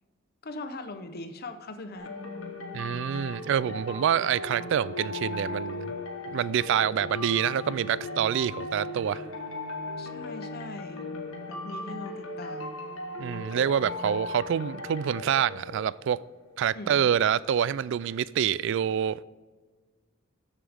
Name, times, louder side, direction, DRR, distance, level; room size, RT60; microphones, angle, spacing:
voice 1, 0.4-2.1 10.0-11.1 11.5-12.8 16.7-17.0, left 2 dB, 50° left, 0.7 m, -40 dB
sound 1, 1.9-16.4, left 2 dB, 90° left, 1.4 m, -37 dB
voice 2, 2.7-5.9 6.3-9.2 13.2-16.2 16.6-19.2, right 9 dB, 65° right, 0.3 m, -27 dB
13.0 x 7.3 x 3.5 m
head